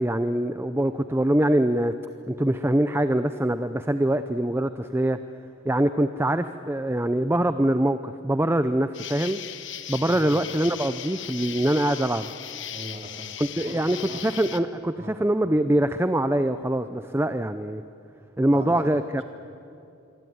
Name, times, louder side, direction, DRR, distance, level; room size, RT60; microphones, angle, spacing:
voice 1, 0.0-1.9 2.3-5.2 5.6-9.4 9.9-12.3 13.4-14.0 14.2-17.8 18.4-19.2, right 1 dB, 10° right, 10 dB, 0.6 m, -24 dB
Insect, 8.9-14.6, left 11 dB, 55° left, 1.2 m, -37 dB
voice 2, 10.1-10.4 12.7-14.2 15.0-15.2 18.5-18.9, right 1 dB, 30° right, 2 dB, 3.5 m, -40 dB
26.5 x 23.5 x 9.4 m, 2.6 s
head